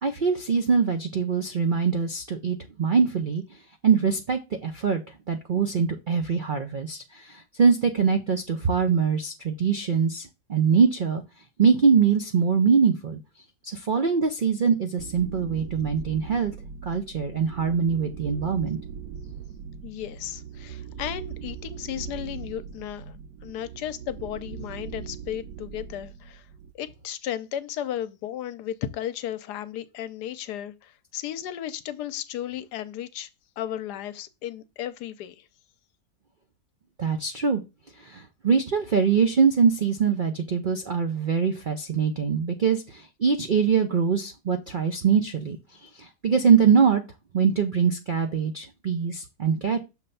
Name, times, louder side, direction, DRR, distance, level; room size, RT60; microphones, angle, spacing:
voice 1, 0.0-3.4 3.8-5.0 5.3-11.2 11.6-13.2 13.6-16.5 16.9-18.8 37.0-37.6 38.0-47.0 47.3-49.8, right 6 dB, 65° right, 0.5 m, -23 dB
sound 1, 15.0-26.7, right 7 dB, 85° right, 1.2 m, -40 dB
voice 2, 19.8-23.2 23.4-26.4 26.7-33.3 33.6-35.5, left 11 dB, 80° left, 1.2 m, -34 dB
6.5 x 3.3 x 5.4 m
omnidirectional pair, 1.7 m